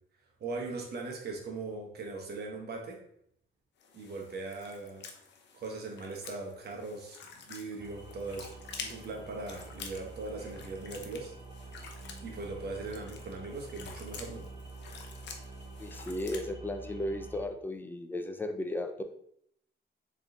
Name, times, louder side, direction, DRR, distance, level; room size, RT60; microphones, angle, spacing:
voice 1, 0.4-3.0 3.9-5.1 5.5-11.3 12.2-14.5, right 3 dB, 55° right, 1 dB, 1.0 m, -40 dB
sound 1, 3.8-16.5, left 5 dB, 60° left, 0.7 m, -49 dB
sound 2, 7.8-17.5, right 3 dB, 20° right, 0.8 m, -47 dB
voice 2, 15.8-19.0, left 1 dB, 10° left, 6 dB, 0.4 m, -35 dB
3.9 x 3.6 x 2.5 m, 0.70 s
cardioid pair, 90°, 20 cm